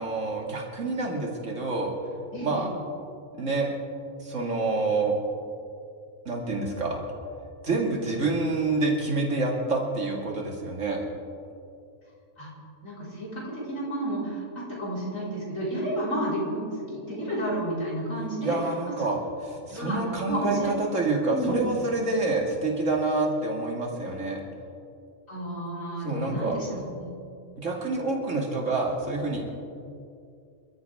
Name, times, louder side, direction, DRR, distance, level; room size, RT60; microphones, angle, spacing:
voice 1, 0.0-1.9 2.4-2.7 3.3-3.7 4.2-5.2 6.3-7.0 7.6-11.0 18.4-24.4 26.0-26.6 27.6-29.4, right 3 dB, 70° right, -1 dB, 2.7 m, -27 dB
voice 2, 2.3-2.7 12.4-12.5 12.8-18.6 19.7-20.0 20.2-20.7 21.3-21.6 25.3-27.1, right 1 dB, 80° left, -7 dB, 5.5 m, -31 dB
27.0 x 13.5 x 3.7 m, 2.4 s
omnidirectional pair, 1.4 m